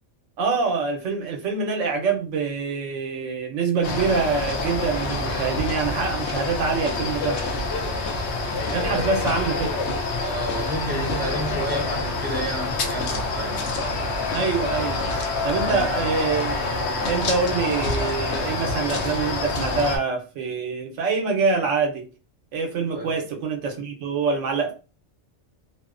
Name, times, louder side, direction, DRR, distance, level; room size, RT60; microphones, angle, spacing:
voice 1, 0.4-7.4 8.7-9.7 14.3-22.1 22.5-24.7, right 4 dB, 90° right, 1.0 m, -25 dB
sound 1, 3.8-20.0, left 3 dB, 70° left, 0.8 m, -27 dB
voice 2, 8.7-9.0 10.2-13.7 15.5-15.9 22.9-23.2, equal, 10° right, 0.7 m, -31 dB
2.6 x 2.1 x 2.4 m
omnidirectional pair, 1.2 m